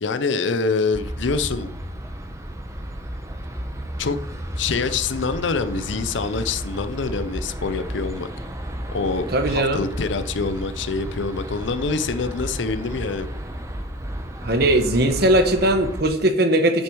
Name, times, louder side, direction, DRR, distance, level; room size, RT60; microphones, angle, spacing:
voice 1, 0.0-1.7 4.0-4.2 4.6-8.3 8.9-13.3, left 4 dB, 70° left, 0.6 m, -25 dB
sound 1, 0.9-16.0, equal, 15° right, 0.8 m, -33 dB
voice 2, 9.3-9.8 14.4-16.8, right 1 dB, 55° right, 1.0 m, -19 dB
8.3 x 6.8 x 4.6 m
head